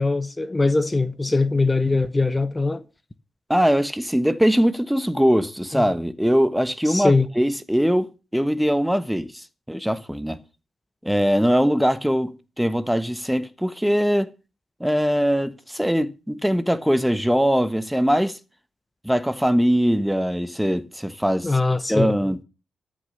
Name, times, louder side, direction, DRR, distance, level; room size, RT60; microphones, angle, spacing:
voice 1, 0.0-2.8 5.7-5.8 6.9-7.3 21.4-22.1, left 3 dB, 20° left, 1.0 m, -21 dB
voice 2, 3.5-10.4 11.0-14.3 14.8-18.4 19.0-21.5 21.9-22.4, equal, 5° right, 1.2 m, -21 dB
13.5 x 6.5 x 7.0 m
supercardioid pair, 45°, 0 cm